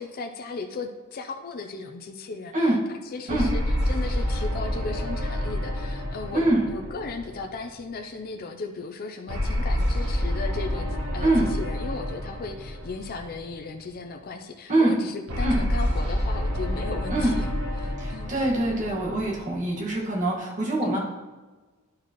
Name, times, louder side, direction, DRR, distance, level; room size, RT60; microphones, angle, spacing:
voice 1, 0.0-2.8 3.1-17.5 17.8-18.3 20.8-21.0, left 3 dB, 40° left, 4 dB, 0.5 m, -36 dB
sound 1, 3.3-7.9 9.3-13.7 15.3-19.8, left 1 dB, 80° right, 1.3 m, -28 dB
voice 2, 6.3-6.7 11.2-11.5 14.7-14.9 15.4-15.6 17.1-17.3 18.0-21.0, right 1 dB, 35° right, -4 dB, 1.6 m, -24 dB
11.0 x 4.7 x 3.0 m, 1.3 s
head